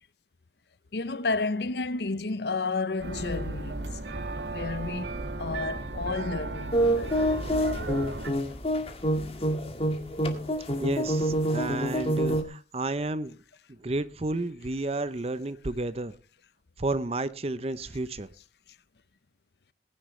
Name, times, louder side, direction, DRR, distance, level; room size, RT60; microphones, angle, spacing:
voice 1, 0.9-4.1 4.4-7.9, left 3 dB, 70° left, 0.7 m, -32 dB
sound 1, 3.0-8.3, right 2 dB, 80° right, 1.9 m, -35 dB
sound 2, 6.7-12.4, equal, 35° left, 1.8 m, -27 dB
voice 2, 10.8-13.4 13.7-16.1 16.8-18.3, right 2 dB, 35° right, 0.6 m, -31 dB
20.0 x 10.0 x 3.2 m
head